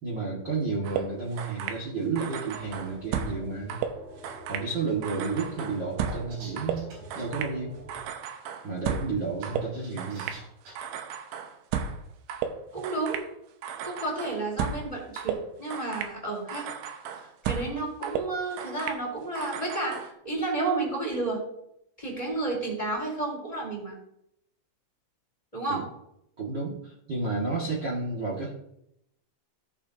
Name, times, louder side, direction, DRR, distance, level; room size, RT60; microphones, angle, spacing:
voice 1, 0.0-3.8 4.5-7.8 8.6-10.3 25.7-25.8 26.4-28.5, right 4 dB, 45° right, -5 dB, 1.5 m, -31 dB
sound 1, 0.8-1.8 2.2-3.4 3.7-4.7 5.0-7.6 7.9-9.2 9.4-10.4 10.8-12.0 12.3-13.3 13.6-14.9 15.2-16.2 16.5-17.8 18.0-19.0 19.4-20.1, right 8 dB, 80° right, 3.2 m, -34 dB
sound 2, 2.5-8.1, equal, 25° right, 3.6 m, -47 dB
sound 3, 6.1-7.3 9.2-10.7, right 3 dB, 65° right, 6.0 m, -46 dB
voice 2, 12.7-13.2 13.8-16.7 17.4-21.5 22.0-24.0 25.5-25.9, right 2 dB, 10° left, -3 dB, 3.6 m, -31 dB
17.0 x 7.0 x 2.8 m, 0.77 s
omnidirectional pair, 5.3 m